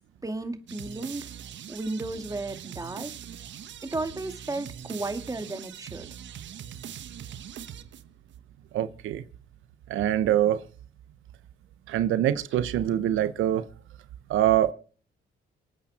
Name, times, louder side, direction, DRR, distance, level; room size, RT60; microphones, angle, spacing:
voice 1, 0.2-1.3 1.7-3.1 3.8-6.1, right 2 dB, 15° right, 2.3 m, -34 dB
sound 1, 0.7-8.3, right 9 dB, 65° right, 1.3 m, -42 dB
voice 2, 8.7-9.2 9.9-10.6 11.9-13.7 14.3-14.7, right 11 dB, 85° right, 1.0 m, -24 dB
25.5 x 8.8 x 4.3 m
cardioid pair, 90°, 20 cm